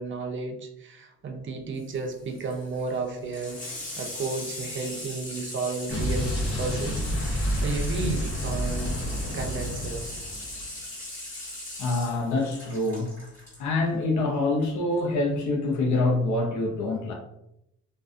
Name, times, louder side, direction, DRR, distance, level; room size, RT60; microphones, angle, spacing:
voice 1, 0.0-3.6 4.0-8.9 9.3-10.2, right 4 dB, 40° right, 4 dB, 0.5 m, -33 dB
Water tap faucet / Sink (filling or washing), 1.8-13.6 14.9-15.0, left 1 dB, 25° left, 1.3 m, -39 dB
Explosion, 5.9-10.7, equal, 50° left, 1.0 m, -29 dB
voice 2, 11.8-13.1 13.6-17.1, left 2 dB, 75° left, 1 dB, 0.7 m, -25 dB
2.4 x 2.4 x 2.4 m, 0.81 s
cardioid pair, 90°, 30 cm